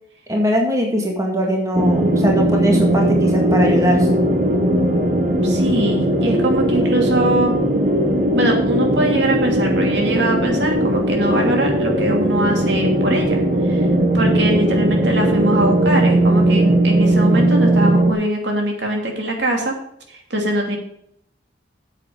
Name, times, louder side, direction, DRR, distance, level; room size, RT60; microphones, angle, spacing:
voice 1, 0.3-4.2, equal, 20° right, 0 dB, 1.9 m, -20 dB
sound 1, 1.7-18.1, right 1 dB, 45° right, 1.4 m, -18 dB
voice 2, 5.4-7.5 8.3-13.9 14.1-19.7 20.1-20.8, right 1 dB, 75° right, 1 dB, 2.8 m, -22 dB
9.1 x 7.8 x 5.2 m, 0.70 s
head